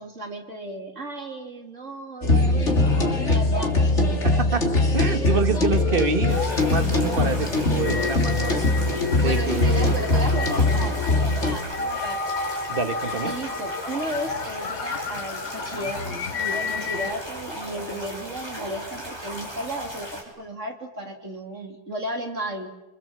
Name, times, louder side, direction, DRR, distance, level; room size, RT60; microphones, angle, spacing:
voice 1, 0.0-4.2 9.2-12.3 13.2-22.7, right 1 dB, 55° right, 3 dB, 3.4 m, -34 dB
sound 1, 2.2-11.6, left 2 dB, 50° left, 3.3 m, -22 dB
voice 2, 4.2-8.6 9.2-9.9 12.7-13.3, right 5 dB, 40° right, 8 dB, 1.6 m, -27 dB
sound 2, 5.7-17.1, left 6 dB, 70° left, 1.6 m, -32 dB
sound 3, 6.3-20.2, equal, 15° left, 6.7 m, -36 dB
25.5 x 25.5 x 7.7 m, 1.0 s
omnidirectional pair, 1.5 m